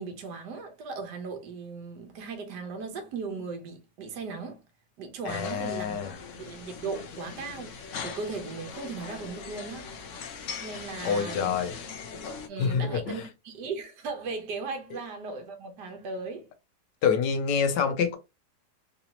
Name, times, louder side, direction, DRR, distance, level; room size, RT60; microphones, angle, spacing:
voice 1, 0.0-4.6 5.0-6.0 6.4-10.0 10.6-11.6 12.5-16.5, right 4 dB, 75° right, 1.5 m, -37 dB
voice 2, 5.2-6.1 11.0-11.7 12.6-13.3 17.0-18.2, left 6 dB, 80° left, 1.3 m, -26 dB
sound 1, 5.3-12.5, left 5 dB, 60° left, 0.8 m, -40 dB
3.8 x 2.7 x 2.8 m
omnidirectional pair, 1.8 m